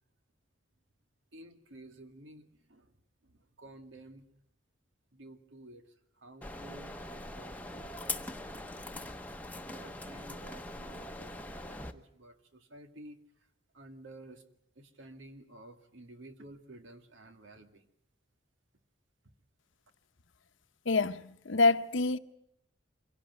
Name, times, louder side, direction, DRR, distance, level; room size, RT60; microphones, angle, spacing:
voice 1, 1.3-2.9 3.2-4.3 5.1-9.1 9.6-13.2 13.7-14.4 14.8-17.9, right 1 dB, 90° right, 2.1 m, -53 dB
sound 1, 6.4-11.9, left 2 dB, 10° left, 0.9 m, -42 dB
voice 2, 20.9-22.2, left 3 dB, 90° left, 0.9 m, -26 dB
25.0 x 17.0 x 9.4 m
head